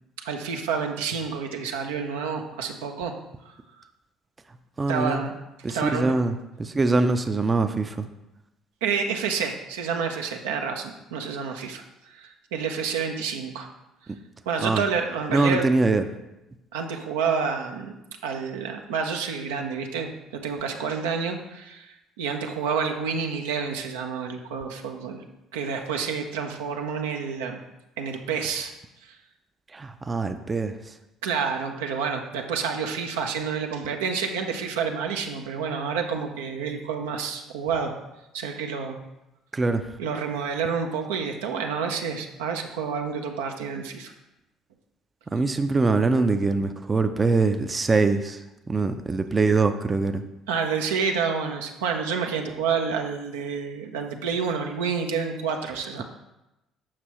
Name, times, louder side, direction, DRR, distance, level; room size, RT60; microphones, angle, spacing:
voice 1, 0.2-3.1 3.4-3.5 4.9-5.3 5.7-6.1 8.8-13.7 14.5-15.7 16.7-17.9 18.2-25.2 25.5-27.6 28.0-28.7 29.0-29.2 31.2-37.9 38.3-39.0 40.0-44.1 50.5-56.0, right 6 dB, 75° right, 3 dB, 0.6 m, -29 dB
voice 2, 4.8-5.2 5.6-8.1 14.1-14.2 14.6-14.8 15.3-16.0 29.7-30.9 39.5-39.9 45.3-50.2, right 3 dB, 25° right, 8 dB, 0.5 m, -23 dB
7.4 x 5.9 x 3.0 m, 0.96 s
hypercardioid pair, 50°, 0 cm